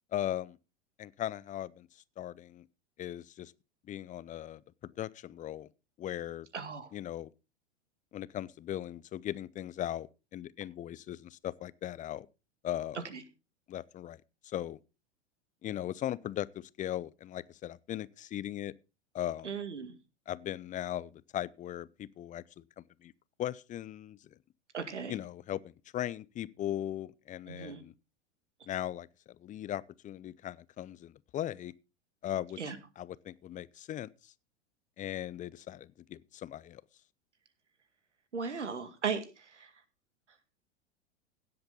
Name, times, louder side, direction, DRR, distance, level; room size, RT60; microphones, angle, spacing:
voice 1, 0.1-0.6 1.0-1.9 2.2-2.7 3.0-3.5 3.9-5.7 6.0-6.5 6.9-7.3 8.1-12.3 12.6-13.0 13.7-14.8 15.6-18.7 19.1-19.5 20.3-23.1 23.4-24.2 25.1-27.9 28.7-31.7 32.2-32.6 33.0-34.3 35.0-36.8, left 12 dB, 20° left, 0.5 m, -38 dB
voice 2, 6.5-6.9 13.1-13.2 19.4-20.0 24.7-25.1 27.5-27.8 32.6-32.8 38.3-39.7, right 6 dB, 85° right, 2.0 m, -37 dB
16.5 x 7.9 x 3.8 m
hypercardioid pair, 95°, 34 cm